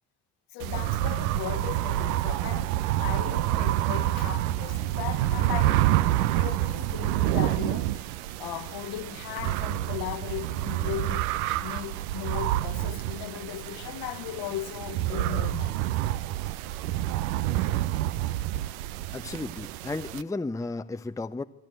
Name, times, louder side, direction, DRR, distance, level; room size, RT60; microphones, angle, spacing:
voice 1, 0.5-2.7 3.0-5.9 6.4-8.1 8.4-11.3 11.6-15.8, left 13 dB, 60° left, 1.5 m, -37 dB
sound 1, 0.6-20.2, right 14 dB, 70° right, 0.7 m, -28 dB
voice 2, 19.1-21.4, left 3 dB, 5° left, 0.7 m, -33 dB
27.5 x 12.0 x 9.1 m
hypercardioid pair, 55°, 44 cm